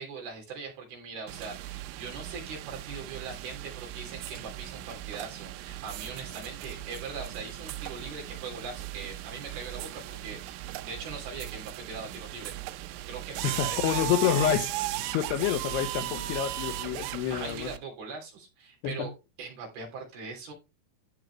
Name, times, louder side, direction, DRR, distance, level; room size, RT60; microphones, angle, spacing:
voice 1, 0.0-12.6 13.1-14.6 15.3-15.4 17.3-19.1 19.4-20.5, right 4 dB, 55° right, 4.7 m, -41 dB
sound 1, 1.3-17.8, right 15 dB, 90° right, 3.2 m, -37 dB
voice 2, 13.4-14.7 15.1-17.7 18.8-19.1, left 10 dB, 80° left, 2.4 m, -28 dB
14.5 x 4.8 x 3.1 m
omnidirectional pair, 5.7 m